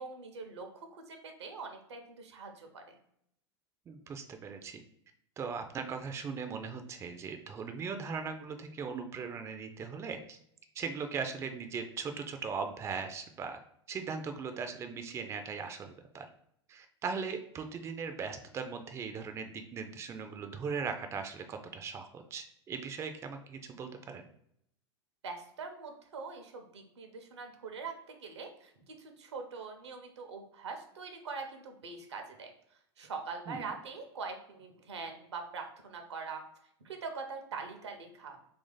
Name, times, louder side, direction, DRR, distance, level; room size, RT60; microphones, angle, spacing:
voice 1, 0.0-3.0 25.2-32.5 33.0-36.4 36.8-38.4, right 4 dB, 80° right, 5 dB, 0.7 m, -43 dB
voice 2, 3.9-4.8 5.4-10.4 10.7-13.6 13.9-16.3 16.7-24.3 33.5-33.7, right 5 dB, 20° right, 6 dB, 0.3 m, -39 dB
2.9 x 2.6 x 3.7 m, 0.72 s
hypercardioid pair, 90°, 14 cm